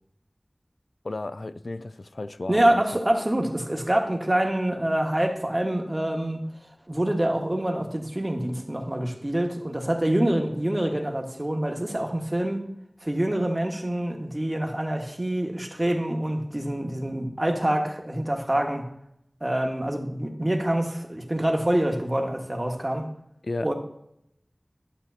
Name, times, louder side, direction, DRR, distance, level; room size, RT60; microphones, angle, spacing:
voice 1, 1.0-2.8 23.4-23.7, left 2 dB, 85° left, 0.3 m, -33 dB
voice 2, 2.5-6.4 6.9-12.6 13.0-18.8 19.4-23.0 23.6-23.7, right 1 dB, 35° right, 1.5 m, -26 dB
11.5 x 7.5 x 2.8 m
wide cardioid pair, 40°, 0 cm